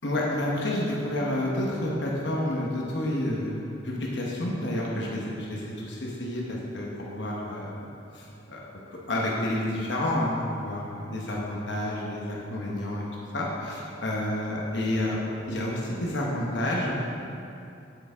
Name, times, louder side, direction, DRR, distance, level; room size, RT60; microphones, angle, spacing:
voice 1, 0.0-8.6 9.1-13.1 13.3-15.2 15.5-17.0, left 1 dB, 70° left, -3 dB, 1.1 m, -29 dB
8.1 x 7.9 x 3.5 m, 2.7 s
head